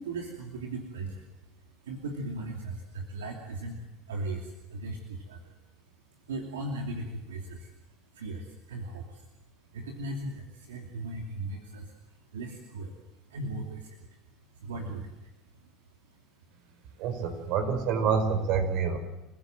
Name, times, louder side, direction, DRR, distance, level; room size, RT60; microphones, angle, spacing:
voice 1, 0.0-17.0, right 2 dB, 85° right, 2 dB, 2.7 m, -39 dB
voice 2, 17.0-19.0, right 6 dB, 65° right, 8 dB, 4.9 m, -27 dB
29.0 x 16.5 x 7.7 m, 0.95 s
hypercardioid pair, 80°, 0 cm